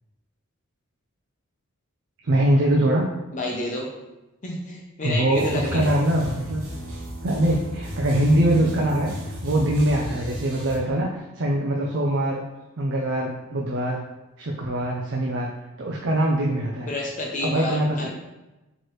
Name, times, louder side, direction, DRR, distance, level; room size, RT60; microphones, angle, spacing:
voice 1, 2.2-3.1 5.0-6.6 7.2-12.4 12.8-14.0 14.4-15.5 15.8-16.9 17.4-18.1, right 1 dB, 55° right, -1 dB, 0.5 m, -23 dB
voice 2, 3.3-3.9 4.4-5.9 16.9-18.1, left 2 dB, 35° left, -1 dB, 0.6 m, -29 dB
sound 1, 5.3-10.8, equal, 90° right, 1.2 m, -34 dB
4.5 x 3.0 x 3.1 m, 1.0 s
head